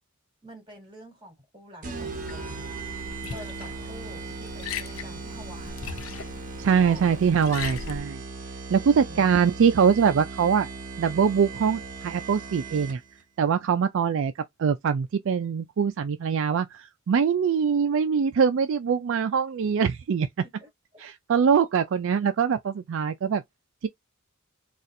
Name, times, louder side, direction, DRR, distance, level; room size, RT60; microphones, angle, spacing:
voice 1, 0.4-2.7 3.3-6.1 6.6-7.1 9.1-9.3 20.4-21.1, equal, 25° right, 2.3 m, -47 dB
Liquid, 1.8-8.0, left 6 dB, 70° left, 0.6 m, -39 dB
sound 1, 1.8-13.2, right 4 dB, 40° right, 0.8 m, -38 dB
voice 2, 6.6-8.2 8.7-10.7 11.0-13.0 13.4-14.3 14.6-20.3 21.0-23.4, right 6 dB, 65° right, 0.4 m, -23 dB
4.1 x 2.4 x 2.6 m
head